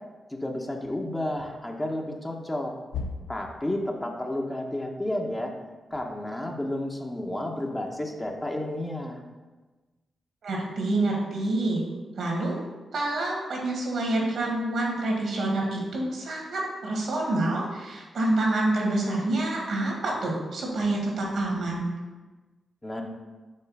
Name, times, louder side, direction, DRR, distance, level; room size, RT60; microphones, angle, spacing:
voice 1, 0.3-2.7 3.3-5.5 5.9-9.2 22.8-23.0, left 1 dB, 20° left, 1 dB, 1.0 m, -31 dB
sound 1, 0.8-1.7 2.1-2.4 2.9-4.4 5.7-6.8 7.5-8.9, left 4 dB, 80° left, 0.5 m, -42 dB
voice 2, 10.4-11.8 12.2-12.6 12.9-21.8, right 2 dB, 75° right, -1 dB, 1.5 m, -27 dB
5.3 x 3.2 x 5.5 m, 1.2 s
supercardioid pair, 40°, 0 cm